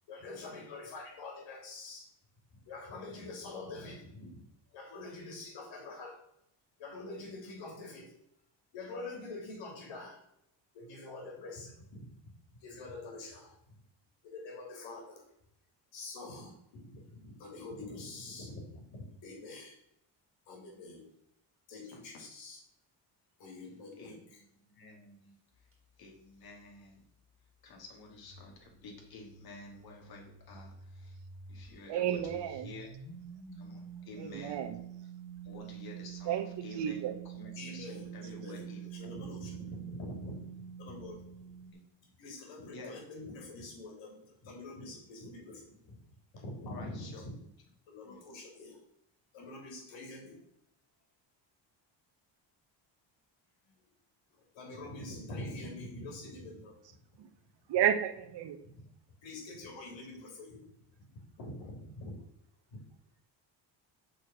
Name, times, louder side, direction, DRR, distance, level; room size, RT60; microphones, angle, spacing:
voice 1, 0.1-2.1 2.7-4.4 4.7-6.2 6.8-8.1 8.7-10.2 10.7-12.1 12.5-13.7 14.2-15.2 15.9-19.8 20.5-21.0 21.7-22.6 23.4-24.4 37.6-41.5 42.2-46.0 46.3-47.3 47.9-48.8 49.3-50.4 54.3-56.8 58.6-58.7 59.2-60.6 61.0-61.1 61.4-62.2 62.7-62.8, left 2 dB, 80° left, 0 dB, 3.2 m, -45 dB
voice 2, 21.9-22.3 24.0-24.2 24.7-25.3 26.0-27.1 27.6-31.2 31.5-33.2 33.5-34.7 35.4-39.2 41.7-41.9 42.7-43.0 46.7-47.2 48.0-48.2, left 2 dB, 55° left, 1 dB, 2.3 m, -51 dB
sound 1, 28.3-31.7 32.2-41.7, right 8 dB, 30° right, 1.9 m, -47 dB
voice 3, 31.9-32.7 34.2-34.8 36.2-37.2 57.2-57.3 57.7-58.6, right 10 dB, 70° right, 9 dB, 1.1 m, -32 dB
6.4 x 4.4 x 6.2 m, 0.76 s
cardioid pair, 110°, 44 cm